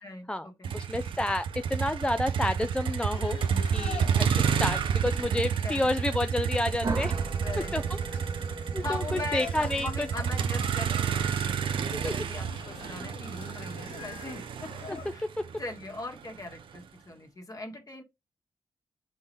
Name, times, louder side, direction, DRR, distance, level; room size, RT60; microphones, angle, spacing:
voice 1, 0.0-0.7 3.5-4.1 5.6-5.8 7.4-7.8 8.8-15.3 15.6-18.0, left 2 dB, 40° left, 1.3 m, -40 dB
Motor vehicle (road), 0.6-16.8, right 7 dB, 70° right, 0.5 m, -30 dB
voice 2, 0.7-3.4 3.7-7.2 7.7-7.8 8.7-10.1 11.9-12.1 14.9-15.0, left 1 dB, 10° left, 0.4 m, -30 dB
sound 1, 3.1-15.1, left 8 dB, 70° left, 0.4 m, -47 dB
sound 2, 6.8-11.5, right 3 dB, 40° right, 0.9 m, -38 dB
4.0 x 3.6 x 3.0 m
supercardioid pair, 45°, 9 cm